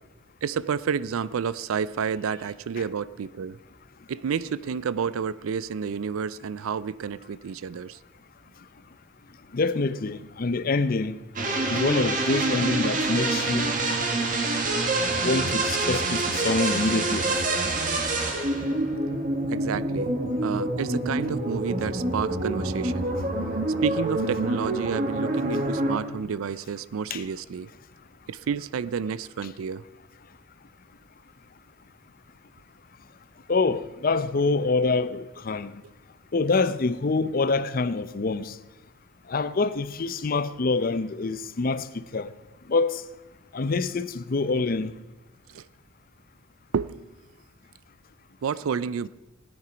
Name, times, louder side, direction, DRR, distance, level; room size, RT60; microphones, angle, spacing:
voice 1, 0.4-3.6 4.1-8.0 19.5-20.1 20.4-23.2 23.8-27.7 28.3-29.8 45.5-45.6 46.7-47.0 48.4-49.1, right 6 dB, 85° right, 0.4 m, -30 dB
voice 2, 9.5-11.2 11.7-13.7 15.2-17.6 27.1-27.2 33.5-35.8 36.3-38.6 39.3-42.3 42.7-43.0 43.5-44.9, left 3 dB, 45° left, 0.5 m, -26 dB
sound 1, 11.4-26.0, right 2 dB, 40° right, 1.6 m, -26 dB
17.0 x 9.6 x 5.0 m
head